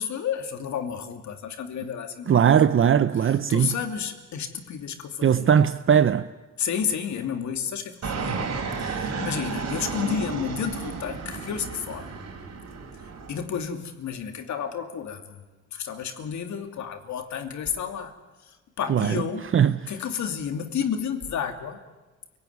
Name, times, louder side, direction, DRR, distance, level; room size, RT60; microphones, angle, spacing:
voice 1, 0.0-2.5 3.2-5.6 6.6-8.5 8.8-12.1 13.3-15.4 15.7-18.1 18.5-19.5 19.9-21.8, left 7 dB, 70° left, 2.8 m, -31 dB
voice 2, 2.3-3.7 5.2-6.3 8.3-8.4 18.9-19.2 19.5-19.8, right 8 dB, 45° right, 0.8 m, -19 dB
Fixed-wing aircraft airplane, 8.0-13.4, right 5 dB, 60° right, 5.2 m, -32 dB
29.5 x 17.5 x 9.6 m
cardioid pair, 90°, 30 cm